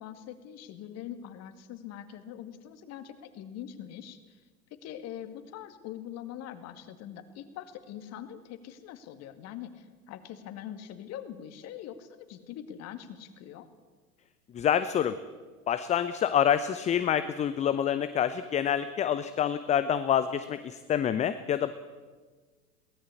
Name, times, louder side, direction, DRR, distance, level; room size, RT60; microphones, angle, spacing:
voice 1, 0.0-4.4 4.8-13.7, left 10 dB, 35° left, 9 dB, 2.2 m, -43 dB
voice 2, 14.5-15.2 15.7-21.7, left 9 dB, 15° left, 12 dB, 0.6 m, -27 dB
22.5 x 18.0 x 8.4 m, 1.4 s
figure-of-eight pair, 90°, 45 cm